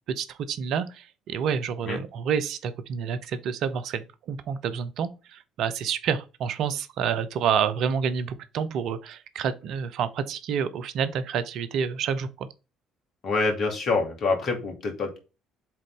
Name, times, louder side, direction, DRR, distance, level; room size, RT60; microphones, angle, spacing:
voice 1, 0.2-12.5, right 7 dB, 60° right, 0.7 m, -28 dB
voice 2, 13.2-15.2, left 3 dB, 55° left, 2.6 m, -26 dB
7.6 x 3.9 x 3.7 m
hypercardioid pair, 50°, 0 cm